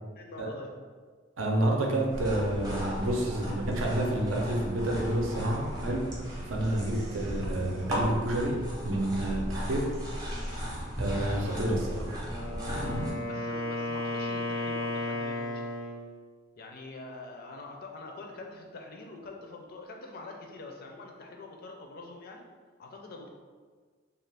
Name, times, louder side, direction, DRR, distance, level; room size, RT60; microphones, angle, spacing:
voice 1, 0.2-0.7 9.5-9.7 13.3-15.7 16.6-22.4 22.8-23.3, left 2 dB, 50° left, 1 dB, 0.4 m, -44 dB
voice 2, 1.4-9.8 11.0-12.1, right 1 dB, 80° right, -1 dB, 0.6 m, -29 dB
sound 1, 2.1-13.1, equal, 20° right, 0.6 m, -35 dB
Wind instrument woodwind instrument, 12.2-16.1, left 1 dB, 90° left, 0.7 m, -34 dB
2.5 x 2.3 x 3.3 m, 1.5 s
head